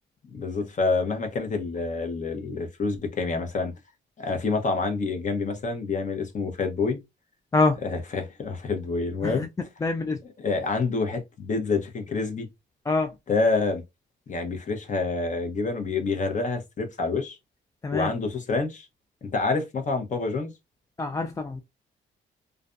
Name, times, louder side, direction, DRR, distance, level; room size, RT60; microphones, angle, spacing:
voice 1, 0.3-3.7 4.2-7.0 7.9-9.5 10.4-12.5 13.3-13.8 14.3-17.4 17.9-18.9 19.2-20.5, left 3 dB, 40° left, 0.8 m, -27 dB
voice 2, 9.8-10.2 12.9-13.1 17.8-18.1 21.0-21.6, left 3 dB, 15° left, 0.3 m, -25 dB
2.5 x 2.2 x 2.4 m
cardioid pair, 90°, 20 cm